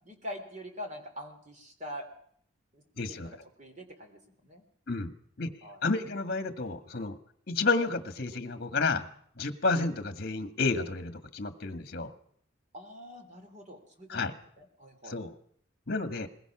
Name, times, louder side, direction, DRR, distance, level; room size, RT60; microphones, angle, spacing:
voice 1, 0.0-2.1 2.7-4.6 5.6-5.8 12.7-15.2, equal, 35° right, 5 dB, 3.4 m, -44 dB
voice 2, 3.0-3.3 4.9-5.5 5.8-7.2 7.5-9.1 9.4-12.1 14.1-14.3 15.1-15.3 15.9-16.3, left 3 dB, 50° left, 9 dB, 1.7 m, -31 dB
21.5 x 21.0 x 6.1 m, 0.65 s
head